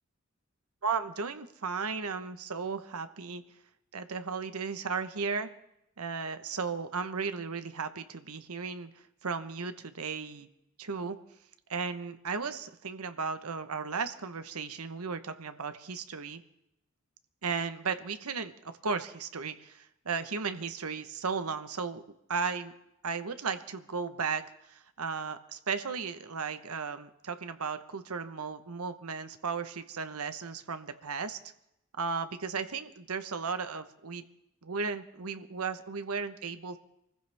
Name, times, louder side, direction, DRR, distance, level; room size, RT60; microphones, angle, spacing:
voice 1, 0.8-3.4 3.9-5.5 6.0-8.9 9.2-10.5 10.8-11.2 11.7-16.4 17.4-22.0 22.3-22.7 23.0-31.4 32.0-34.2 34.6-36.8, right 5 dB, 90° right, 10 dB, 1.1 m, -35 dB
25.0 x 15.0 x 3.5 m, 0.84 s
head